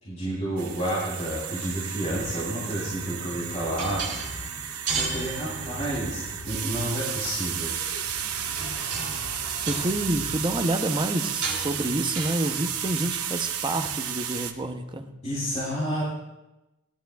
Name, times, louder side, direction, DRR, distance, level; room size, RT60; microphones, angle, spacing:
voice 1, 0.0-4.0 5.0-7.7 15.2-16.0, right 1 dB, 30° left, -8 dB, 3.2 m, -30 dB
sound 1, 0.6-14.5, right 9 dB, 80° right, 0.8 m, -33 dB
sound 2, 2.2-4.7 4.9-7.0 7.2-10.7, left 1 dB, 65° left, 1.2 m, -42 dB
sound 3, 3.8-14.6, right 4 dB, 55° right, 2.8 m, -37 dB
voice 2, 9.7-15.1, right 1 dB, 20° right, 6 dB, 0.7 m, -28 dB
16.0 x 11.5 x 2.3 m, 0.99 s
head